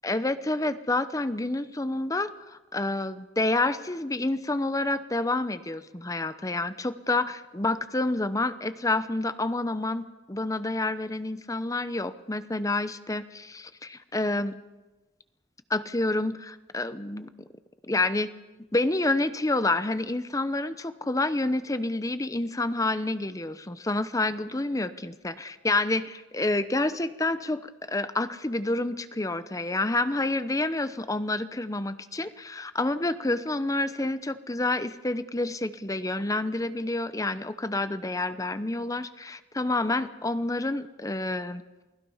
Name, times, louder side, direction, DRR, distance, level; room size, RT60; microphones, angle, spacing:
voice 1, 0.0-14.6 15.7-17.3 17.9-18.3 18.7-41.6, left 2 dB, 20° left, 12 dB, 0.8 m, -28 dB
28.5 x 19.5 x 5.6 m, 1.1 s
head